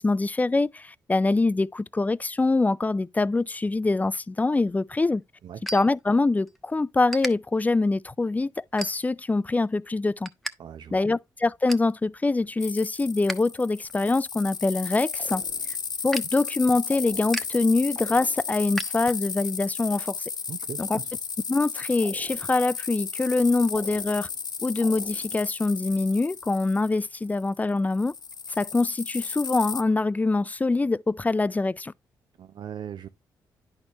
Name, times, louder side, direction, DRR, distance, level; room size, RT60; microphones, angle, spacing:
voice 1, 0.0-5.2 5.7-10.3 10.9-15.4 16.0-20.2 20.8-21.0 21.5-24.3 24.6-28.1 28.6-31.9, left 3 dB, 20° left, 0.3 m, -24 dB
sound 1, 4.5-6.6 6.9-7.3 7.9-8.1 8.6-9.3 9.7-10.5 10.8-10.9 11.3-11.9 12.4-13.4 13.7-19.5, equal, ahead, 1.0 m, -38 dB
voice 2, 10.6-11.0 20.5-21.1 32.4-33.1, right 9 dB, 65° right, 0.5 m, -39 dB
sound 2, 12.6-27.6 27.9-29.8, left 6 dB, 55° left, 0.8 m, -34 dB
sound 3, 15.2-15.9 16.9-17.6 18.0-18.7 22.0-22.8 23.7-24.5 24.8-25.5, right 4 dB, 40° right, 0.8 m, -47 dB
10.5 x 4.3 x 2.8 m
supercardioid pair, 55°, 9 cm